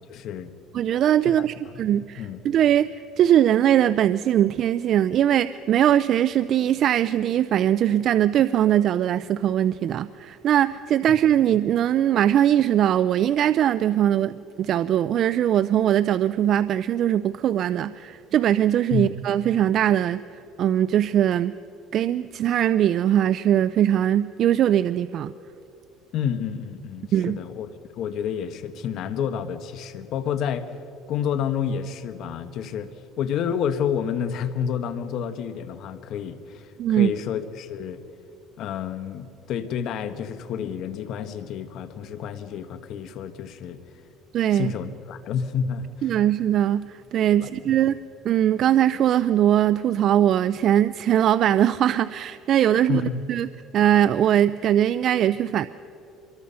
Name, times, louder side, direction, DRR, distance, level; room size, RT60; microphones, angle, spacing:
voice 1, 0.1-0.5 1.2-1.4 2.2-2.4 18.9-19.1 26.1-27.7 27.9-30.7 31.1-32.9 33.2-38.0 38.6-43.8 44.5-46.1 47.3-47.5 52.7-53.2, left 8 dB, 55° left, 10 dB, 1.4 m, -29 dB
voice 2, 0.7-2.9 3.2-20.2 20.6-21.6 21.9-25.3 27.1-27.4 36.8-37.1 44.3-44.7 46.0-48.0 48.2-53.0 53.3-53.5 53.7-55.7, right 11 dB, 50° right, 15 dB, 0.4 m, -21 dB
25.0 x 22.5 x 5.6 m, 2.8 s
cardioid pair, 125°, 0 cm